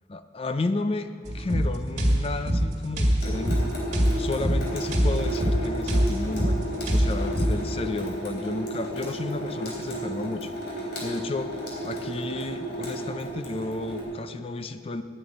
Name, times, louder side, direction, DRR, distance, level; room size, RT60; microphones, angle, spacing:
voice 1, 0.1-3.7 4.2-6.6 6.9-15.0, left 2 dB, 30° left, 10 dB, 0.4 m, -32 dB
sound 1, 1.3-7.6, equal, 40° right, 1.9 m, -24 dB
Water tap faucet / Sink (filling or washing) / Drip, 3.2-14.0, equal, 65° left, 3.7 m, -33 dB
9.0 x 8.9 x 9.6 m, 2.1 s
head